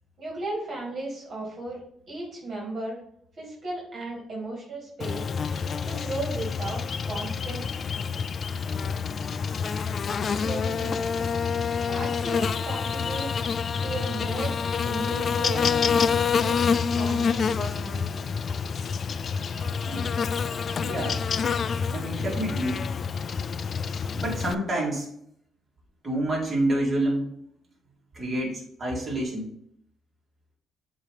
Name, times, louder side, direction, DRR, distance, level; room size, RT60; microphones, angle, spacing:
voice 1, 0.2-1.8 2.1-3.0 3.4-5.3 5.8-7.6 10.2-11.0 11.9-14.5 14.8-15.9 16.3-16.6 17.0-18.2, right 2 dB, 50° right, -4 dB, 2.2 m, -35 dB
Buzz, 5.0-24.5, left 6 dB, 50° left, 0.3 m, -27 dB
voice 2, 19.2-22.8 24.1-25.1 26.0-27.3 28.1-29.5, right 1 dB, 30° right, -5 dB, 2.4 m, -29 dB
7.4 x 3.0 x 5.0 m, 0.70 s
cardioid pair, 90°, 0 cm